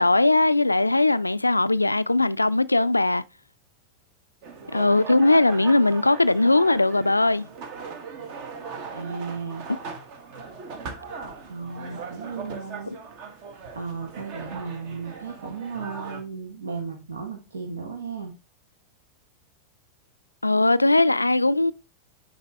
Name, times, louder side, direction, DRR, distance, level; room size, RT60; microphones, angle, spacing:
voice 1, 0.0-3.2 4.7-7.5 9.7-9.8 12.9-13.0 20.4-21.7, left 2 dB, 85° left, 0.3 m, -20 dB
sound 1, 4.4-16.2, right 5 dB, 45° right, 1.3 m, -39 dB
voice 2, 8.9-9.7 11.5-12.9 13.2-13.3 13.7-18.3, right 5 dB, 70° right, 1.3 m, -35 dB
10.0 x 3.9 x 3.2 m
figure-of-eight pair, 90°, 0 cm